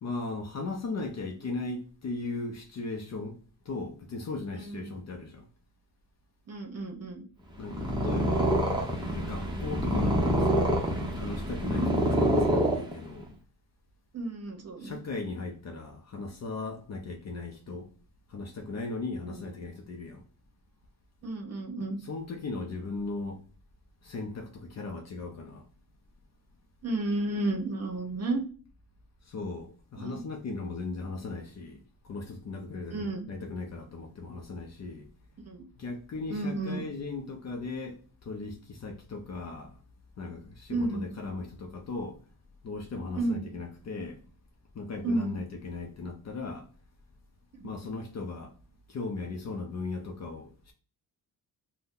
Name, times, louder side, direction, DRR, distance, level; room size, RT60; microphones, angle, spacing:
voice 1, 0.0-5.5 7.6-8.5 9.0-10.7 11.2-13.3 14.8-17.9 18.3-20.2 22.0-23.4 24.0-25.7 29.2-35.1 35.8-39.8 40.2-42.2 42.6-44.2 44.7-46.7 47.6-48.5 48.9-50.7, left 3 dB, 45° left, 0.6 m, -37 dB
voice 2, 4.5-4.9 6.5-7.2 14.1-15.0 19.3-19.4 21.2-22.0 26.8-28.4 30.0-30.2 32.9-33.3 35.5-35.6 36.3-36.8 40.7-41.1 43.2-43.5 45.0-45.4 47.6-47.8, right 2 dB, 45° right, 0.8 m, -32 dB
Purr, 7.6-13.3, equal, 10° right, 0.7 m, -26 dB
2.7 x 2.2 x 3.6 m
cardioid pair, 125°, 37 cm